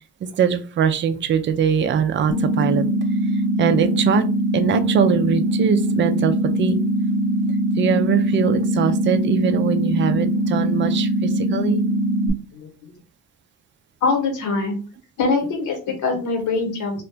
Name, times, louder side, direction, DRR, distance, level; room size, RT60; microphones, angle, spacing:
voice 1, 0.4-2.9 3.6-4.2 4.5-6.8 7.8-11.8, right 7 dB, 40° right, 9 dB, 0.4 m, -22 dB
sound 1, 2.3-12.3, right 1 dB, 40° left, 0.8 m, -21 dB
voice 2, 12.5-12.9 14.0-14.8 15.2-17.0, left 4 dB, 75° left, 2 dB, 1.2 m, -23 dB
2.8 x 2.4 x 3.3 m, 0.36 s
cardioid pair, 90°, 30 cm